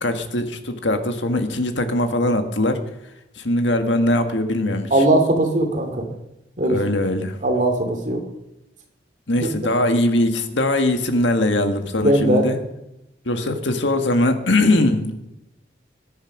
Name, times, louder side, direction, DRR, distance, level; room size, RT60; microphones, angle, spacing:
voice 1, 0.0-2.8 3.4-4.9 6.7-7.4 9.3-12.6 13.3-15.1, left 1 dB, 75° left, 7 dB, 1.7 m, -21 dB
voice 2, 4.9-6.1 6.6-6.8 7.4-8.2 9.4-9.5 12.0-12.5, right 1 dB, 45° right, 4 dB, 2.6 m, -19 dB
21.0 x 10.5 x 6.0 m, 0.91 s
head